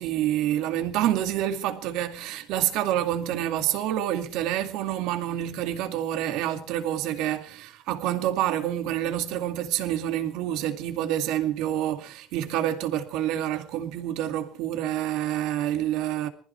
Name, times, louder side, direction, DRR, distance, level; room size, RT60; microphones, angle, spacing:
voice 1, 0.0-16.3, right 12 dB, 70° right, 2.4 m, -27 dB
20.0 x 15.0 x 4.7 m
supercardioid pair, 95°, 0 cm